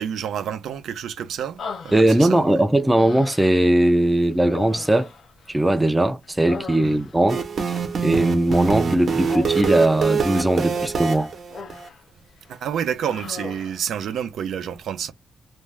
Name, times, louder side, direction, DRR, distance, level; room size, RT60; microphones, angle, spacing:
voice 1, 0.0-2.6 6.8-7.0 12.5-15.1, right 8 dB, 85° right, 0.5 m, -29 dB
Human voice, 1.6-2.5 2.9-3.7 4.5-5.9 6.2-7.3 9.3-10.0 11.0-12.0 12.4-12.6 13.0-13.8, left 5 dB, 60° left, 0.5 m, -38 dB
voice 2, 1.9-5.1 5.5-11.3, right 1 dB, 10° right, 0.4 m, -19 dB
sound 1, 7.3-11.9, right 6 dB, 45° right, 0.8 m, -25 dB
2.6 x 2.2 x 3.1 m
wide cardioid pair, 150°, 0 cm